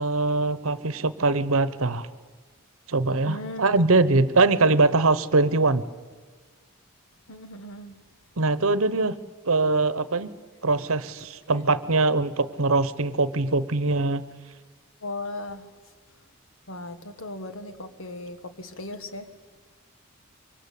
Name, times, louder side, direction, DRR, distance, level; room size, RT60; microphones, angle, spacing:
voice 1, 0.0-2.1 2.9-5.8 8.4-9.2 9.5-10.3 10.6-14.2, right 3 dB, 70° right, 16 dB, 1.1 m, -22 dB
voice 2, 3.2-3.8 7.3-8.0 15.0-15.7 16.7-19.3, left 2 dB, 65° left, 9 dB, 1.7 m, -37 dB
25.5 x 24.0 x 8.5 m, 1.4 s
head